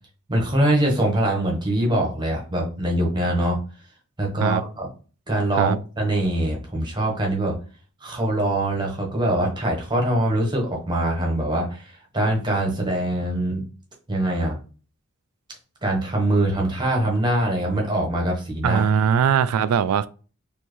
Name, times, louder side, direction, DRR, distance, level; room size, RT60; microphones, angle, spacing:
voice 1, 0.3-3.6 4.2-4.9 5.3-7.5 8.0-13.6 14.1-14.6 15.8-18.8, right 1 dB, 20° right, 1.1 m, -23 dB
voice 2, 18.6-20.1, right 7 dB, 80° right, 0.3 m, -20 dB
4.4 x 2.8 x 3.0 m
head